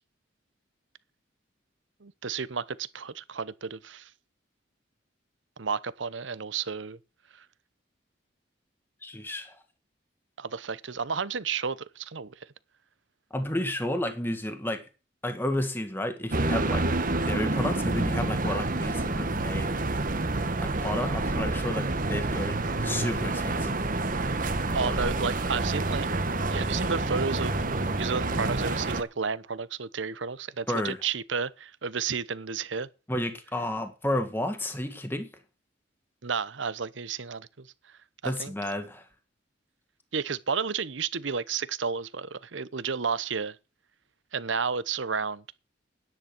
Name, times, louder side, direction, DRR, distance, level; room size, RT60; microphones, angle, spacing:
voice 1, 2.0-4.1 5.6-7.0 10.4-12.3 24.7-26.1 26.5-32.9 36.2-37.7 38.2-38.5 40.1-43.6 44.3-45.4, right 5 dB, 70° right, 0.8 m, -32 dB
voice 2, 9.0-9.6 13.3-14.8 15.2-16.9 17.3-20.1 20.6-23.9 24.8-25.1 30.7-31.0 33.1-35.3 38.2-39.1, left 1 dB, 10° left, 1.7 m, -32 dB
sound 1, 16.3-29.0, right 2 dB, 45° right, 1.4 m, -28 dB
10.0 x 10.0 x 6.1 m
head